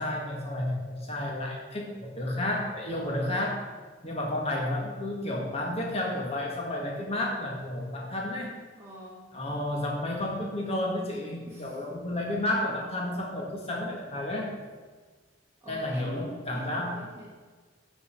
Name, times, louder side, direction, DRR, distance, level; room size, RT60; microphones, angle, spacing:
voice 1, 0.0-3.7 4.0-8.5 9.3-14.5 15.7-17.0, left 1 dB, 35° left, -1 dB, 1.9 m, -31 dB
voice 2, 2.9-3.3 8.3-9.3 11.5-11.8 15.6-17.3, right 1 dB, 15° right, -6 dB, 2.8 m, -45 dB
12.0 x 5.5 x 8.2 m, 1.5 s
head